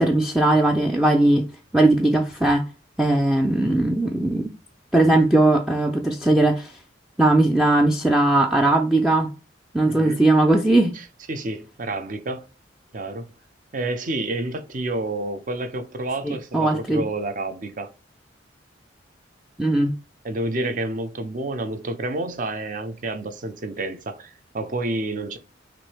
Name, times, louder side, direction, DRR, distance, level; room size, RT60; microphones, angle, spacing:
voice 1, 0.0-1.5 1.7-2.6 3.0-4.5 4.9-6.7 7.2-9.3 9.7-10.9 16.2-17.1 19.6-19.9, right 2 dB, ahead, 0.4 m, -19 dB
voice 2, 9.8-10.2 11.3-12.4 12.9-13.3 13.7-17.9 20.2-25.4, right 2 dB, 45° right, 0.6 m, -29 dB
5.9 x 2.6 x 3.3 m
head